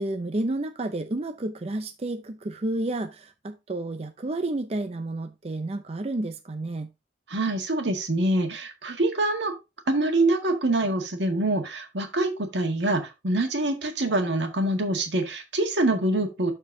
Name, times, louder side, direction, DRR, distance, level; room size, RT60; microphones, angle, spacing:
voice 1, 0.0-6.9, right 2 dB, 35° right, 0.5 m, -31 dB
voice 2, 7.3-9.5 9.9-16.5, right 2 dB, 80° right, 1.7 m, -25 dB
12.5 x 4.4 x 2.7 m
head